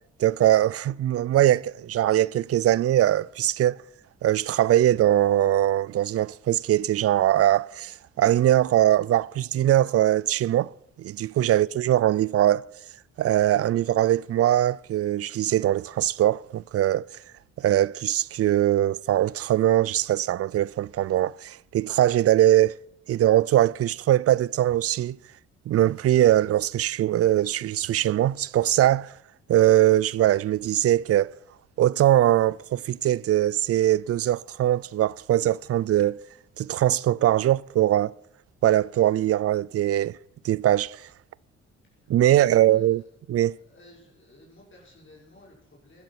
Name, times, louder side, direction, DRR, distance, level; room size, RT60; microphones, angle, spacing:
voice 1, 0.2-3.8 4.2-10.7 11.0-12.7 13.2-17.1 17.6-22.8 23.1-25.2 25.7-29.1 29.5-31.3 31.8-36.2 36.6-38.1 38.6-40.2 40.4-41.0 42.1-43.0 43.3-43.6, right 13 dB, 50° right, 0.4 m, -21 dB
voice 2, 41.9-43.0 43.3-46.0, left 1 dB, 40° left, 5.6 m, -54 dB
12.0 x 12.0 x 5.9 m
cardioid pair, 90°, 30 cm